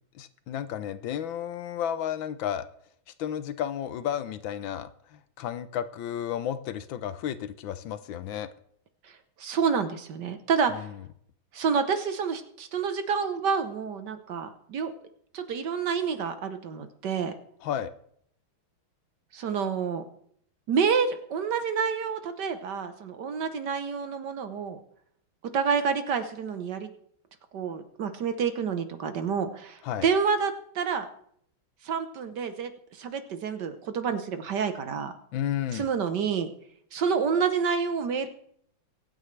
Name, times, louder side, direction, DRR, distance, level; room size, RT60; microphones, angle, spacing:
voice 1, 0.1-2.7 3.2-8.5 10.7-10.9 17.6-17.9 29.8-30.1 35.3-35.9, left 10 dB, 75° left, 13 dB, 1.4 m, -32 dB
voice 2, 9.4-10.9 11.5-14.9 15.3-17.3 19.3-20.0 20.7-24.8 25.5-26.9 27.5-31.1 31.8-35.1 35.7-36.5 36.9-38.3, right 6 dB, 60° right, 9 dB, 1.4 m, -28 dB
23.5 x 9.1 x 3.3 m, 0.66 s
omnidirectional pair, 2.3 m